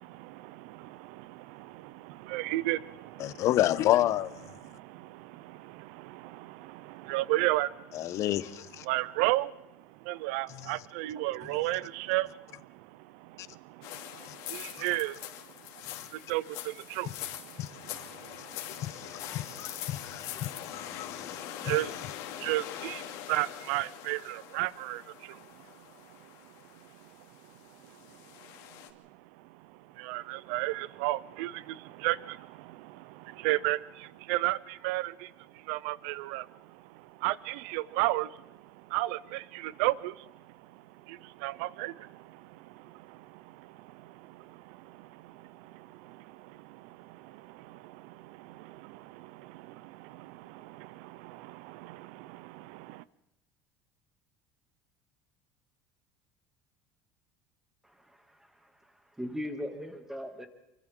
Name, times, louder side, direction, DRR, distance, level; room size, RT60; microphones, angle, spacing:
voice 1, 0.0-3.5 4.5-8.3 8.8-15.2 16.1-25.9 26.2-26.3 27.7-28.2 28.9-29.0 29.5-53.0, right 18 dB, 80° right, 0.6 m, -35 dB
voice 2, 3.2-4.3 7.9-8.8 17.6-17.7 18.8-21.4, left 14 dB, 50° left, 0.9 m, -29 dB
sound 1, 13.8-28.9, left 13 dB, 70° left, 2.7 m, -43 dB
voice 3, 57.8-60.5, equal, 5° right, 2.6 m, -40 dB
28.0 x 24.5 x 3.9 m
cardioid pair, 130°, 6 cm